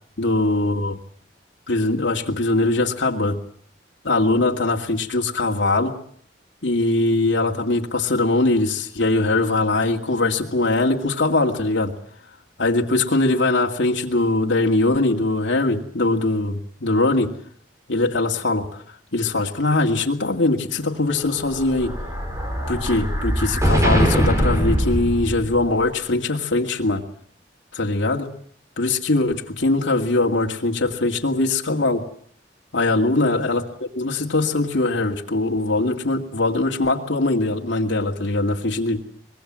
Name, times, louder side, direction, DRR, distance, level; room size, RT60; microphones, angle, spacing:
voice 1, 0.2-1.0 1.7-3.4 4.0-6.0 6.6-11.9 12.6-17.3 17.9-18.7 19.1-22.0 22.7-27.1 27.7-28.3 28.8-32.0 32.7-33.6 33.9-39.0, left 2 dB, 90° left, 1 dB, 2.2 m, -21 dB
Explosion, 21.2-25.8, equal, 15° right, 4.7 m, -22 dB
24.5 x 21.5 x 7.5 m, 0.63 s
head